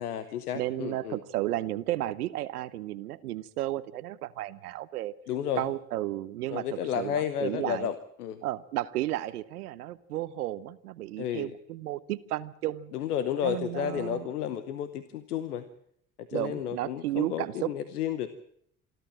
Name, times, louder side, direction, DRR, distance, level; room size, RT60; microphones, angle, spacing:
voice 1, 0.0-1.2 5.3-5.6 6.5-8.4 11.2-11.5 12.9-15.7 16.2-18.3, left 9 dB, 90° left, 13 dB, 1.0 m, -32 dB
voice 2, 0.5-5.1 5.6-7.9 8.4-12.9 13.4-14.3 16.3-17.7, right 15 dB, 85° right, 16 dB, 0.9 m, -33 dB
27.0 x 12.0 x 8.8 m, 0.70 s
hypercardioid pair, 60°, 44 cm